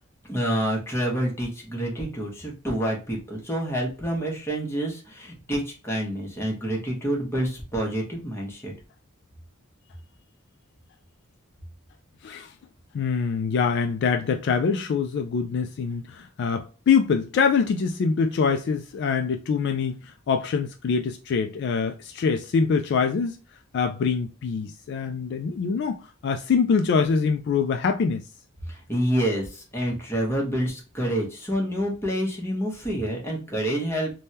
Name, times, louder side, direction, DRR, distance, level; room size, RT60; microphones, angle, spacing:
voice 1, 0.2-8.7 28.7-34.1, right 1 dB, 10° left, 1.0 m, -28 dB
voice 2, 12.9-23.4 23.7-28.2, left 5 dB, 55° left, 0.3 m, -24 dB
3.4 x 2.2 x 2.7 m
head